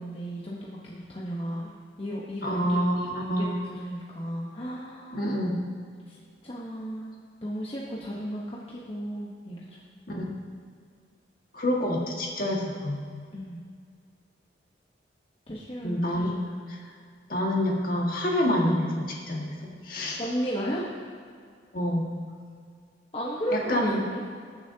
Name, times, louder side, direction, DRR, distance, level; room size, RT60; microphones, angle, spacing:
voice 1, 0.0-2.6 3.4-5.3 6.1-6.2 6.4-7.1 7.4-9.7 10.1-10.2 13.3-13.6 15.5-16.3 20.2-21.0 23.1-23.8 24.1-24.2, equal, 30° left, -5 dB, 1.0 m, -34 dB
voice 2, 2.4-3.5 5.1-5.6 10.1-10.3 11.5-13.0 15.8-16.3 16.7-16.9 17.3-19.6 19.8-20.2 21.7-22.1 23.5-24.0, equal, 50° left, -2 dB, 1.8 m, -27 dB
21.0 x 7.2 x 2.8 m, 2.1 s
head